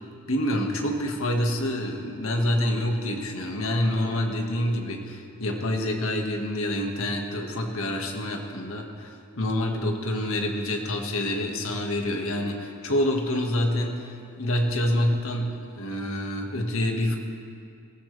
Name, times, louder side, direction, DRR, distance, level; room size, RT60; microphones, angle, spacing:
voice 1, 0.3-14.1 14.4-17.2, left 1 dB, 70° left, 2 dB, 1.8 m, -27 dB
18.5 x 17.0 x 3.4 m, 2.4 s
head